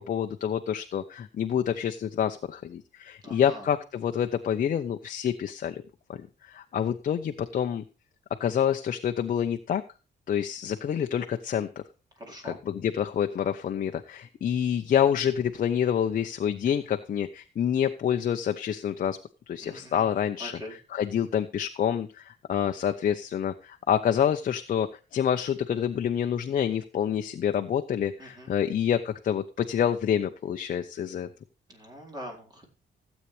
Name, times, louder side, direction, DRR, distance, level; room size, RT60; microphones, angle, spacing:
voice 1, 0.1-5.8 6.1-7.8 8.4-9.8 10.3-11.7 12.4-19.2 19.5-31.3, left 9 dB, 50° left, 6 dB, 0.8 m, -27 dB
voice 2, 3.2-3.7 12.2-12.6 19.6-20.0 20.4-20.7 28.2-28.5 31.7-32.7, equal, 20° right, 1 dB, 4.3 m, -43 dB
15.5 x 8.3 x 3.3 m, 0.33 s
cardioid pair, 145°, 18 cm